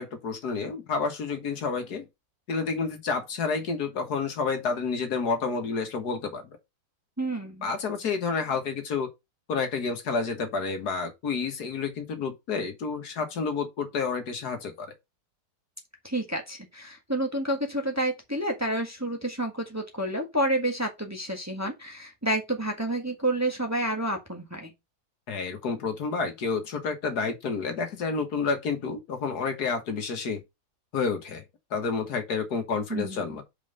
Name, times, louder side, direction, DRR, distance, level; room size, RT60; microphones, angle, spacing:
voice 1, 0.0-2.1 2.5-6.6 7.6-9.1 9.5-14.9 25.3-30.4 30.9-31.4 31.7-33.4, left 5 dB, 70° left, 1.9 m, -29 dB
voice 2, 7.2-7.7 16.0-24.7 32.9-33.3, right 1 dB, 10° right, 1.5 m, -29 dB
5.2 x 4.8 x 5.4 m
omnidirectional pair, 1.8 m